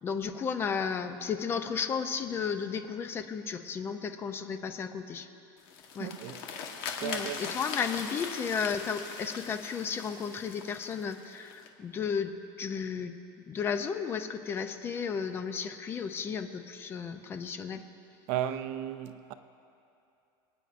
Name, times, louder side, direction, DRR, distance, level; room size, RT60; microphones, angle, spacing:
voice 1, 0.0-5.3 5.9-6.1 7.0-13.1 13.5-17.8, left 6 dB, 20° left, 0.4 m, -33 dB
sound 1, 5.6-11.7, left 6 dB, 75° left, 1.2 m, -40 dB
voice 2, 6.0-6.4 7.0-7.6 18.3-19.3, right 11 dB, 50° right, 0.5 m, -35 dB
25.5 x 9.1 x 2.5 m
cardioid pair, 170°, 12 cm